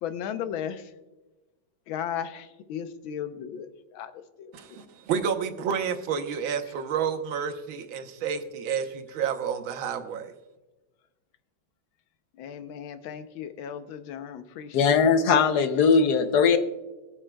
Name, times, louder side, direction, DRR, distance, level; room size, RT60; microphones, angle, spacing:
voice 1, 0.0-0.9 1.9-4.8 12.4-14.8, left 9 dB, 85° left, 10 dB, 1.6 m, -36 dB
voice 2, 4.5-10.3, right 7 dB, 90° right, 7 dB, 1.7 m, -30 dB
voice 3, 14.7-16.6, left 5 dB, 65° left, 9 dB, 1.1 m, -20 dB
22.0 x 7.4 x 2.2 m, 1.1 s
omnidirectional pair, 2.1 m